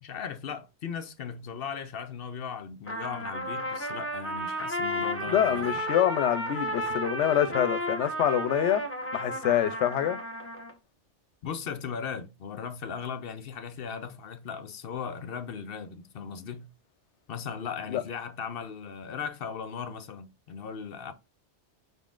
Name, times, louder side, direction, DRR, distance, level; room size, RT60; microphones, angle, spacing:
voice 1, 0.0-5.8 11.4-16.7 17.3-21.1, left 6 dB, 60° left, 0.7 m, -37 dB
Trumpet, 2.9-10.7, equal, 15° left, 0.8 m, -33 dB
voice 2, 5.3-8.8 9.1-10.2 17.9-18.0, left 10 dB, 85° left, 0.9 m, -26 dB
5.6 x 3.7 x 2.4 m
omnidirectional pair, 1.2 m